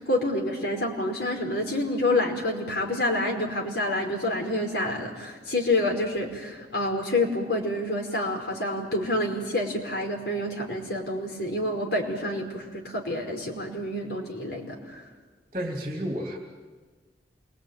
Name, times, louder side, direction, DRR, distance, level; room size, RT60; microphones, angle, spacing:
voice 1, 0.0-15.0, left 1 dB, 70° left, 1 dB, 5.3 m, -28 dB
voice 2, 15.5-16.4, equal, 35° right, 2 dB, 2.8 m, -31 dB
28.0 x 22.0 x 9.1 m, 1.4 s
head